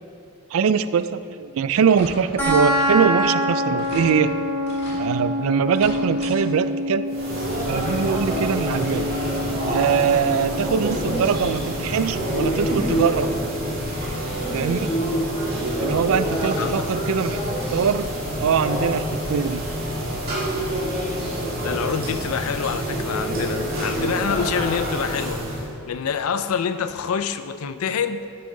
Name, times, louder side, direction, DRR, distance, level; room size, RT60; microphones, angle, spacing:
voice 1, 0.5-4.3 5.0-7.1 7.7-9.1 9.6-13.3 14.5-14.9 15.8-17.4 17.7-18.1 18.4-19.6, right 6 dB, 75° right, 13 dB, 0.3 m, -22 dB
sound 1, 1.7-2.4 2.7-3.1 3.4-3.5 3.8-4.1 4.6-5.0 5.6-6.4 6.7-6.8 8.2-8.3 8.8-8.9, left 1 dB, 50° left, 2.0 m, -39 dB
sound 2, 2.4-13.4, equal, 10° left, 2.0 m, -27 dB
sound 3, 7.1-25.7, equal, 40° right, 2.1 m, -26 dB
voice 2, 16.4-16.9 21.6-28.2, left 6 dB, 80° left, 11 dB, 0.4 m, -27 dB
10.0 x 6.9 x 3.8 m, 2.5 s
head